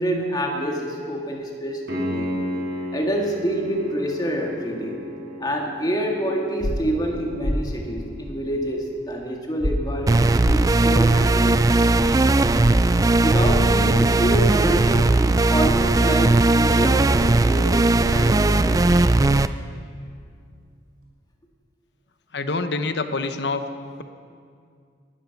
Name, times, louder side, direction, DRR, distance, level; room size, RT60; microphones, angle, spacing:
voice 1, 0.0-2.4 2.9-5.0 5.4-11.6 13.2-18.8, right 1 dB, 20° left, 1 dB, 1.9 m, -27 dB
Piano, 1.9-12.5 15.8-15.9, left 1 dB, 75° right, 3.6 m, -36 dB
sound 1, 6.6-6.7 7.4-7.6 9.6-9.7 10.4-10.6 12.6-12.7 13.4-13.6, equal, 55° left, 1.5 m, -23 dB
sound 2, 10.1-19.5, right 2 dB, 20° right, 0.3 m, -18 dB
voice 2, 22.3-23.7, left 3 dB, 70° left, 9 dB, 0.9 m, -26 dB
19.0 x 12.5 x 5.9 m, 2.2 s
head